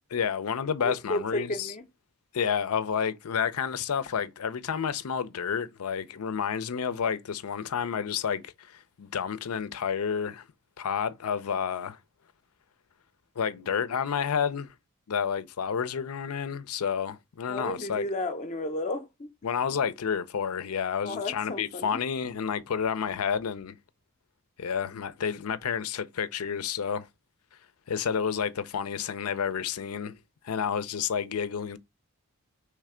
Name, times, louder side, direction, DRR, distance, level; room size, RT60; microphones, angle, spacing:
voice 1, 0.1-1.7 2.3-10.4 10.8-12.0 13.4-14.7 15.1-18.1 19.4-23.8 24.6-27.1 27.9-30.2 30.4-31.8, left 7 dB, 90° left, 0.5 m, -30 dB
voice 2, 0.8-1.8 17.5-19.3 21.0-22.1, left 1 dB, 35° left, 0.6 m, -33 dB
3.3 x 3.3 x 4.8 m
head